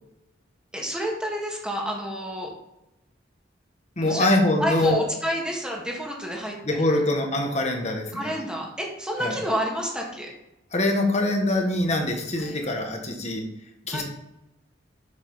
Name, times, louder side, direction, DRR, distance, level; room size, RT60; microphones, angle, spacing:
voice 1, 0.7-2.5 4.0-4.3 4.6-7.0 8.1-10.3 12.4-12.6 13.9-14.0, equal, 5° right, -1 dB, 1.8 m, -29 dB
voice 2, 4.0-5.0 6.6-8.3 9.2-9.4 10.7-13.5 13.8-14.0, left 1 dB, 35° left, 2 dB, 1.5 m, -24 dB
7.6 x 7.0 x 4.0 m, 0.88 s
head